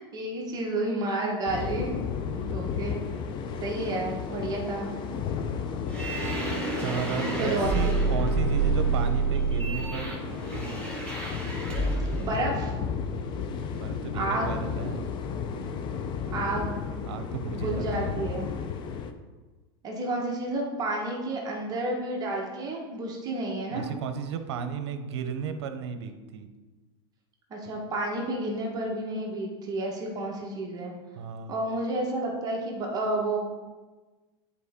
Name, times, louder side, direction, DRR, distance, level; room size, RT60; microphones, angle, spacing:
voice 1, 0.0-1.9 2.3-3.0 3.6-4.9 7.4-8.2 12.2-12.7 14.1-14.6 16.3-16.8 17.5-18.5 19.8-23.9 27.5-30.9 31.5-33.4, right 2 dB, 25° right, -1 dB, 1.2 m, -30 dB
sound 1, 1.5-19.1, left 7 dB, 35° left, 0.6 m, -33 dB
voice 2, 2.2-2.7 5.3-5.9 6.8-11.0 13.7-15.0 17.1-18.3 23.7-26.5 31.1-31.5, right 6 dB, 75° right, 8 dB, 0.8 m, -35 dB
sound 2, 5.8-12.3, right 4 dB, 10° left, 1.8 m, -28 dB
9.6 x 4.4 x 3.6 m, 1.3 s
supercardioid pair, 135°, 14 cm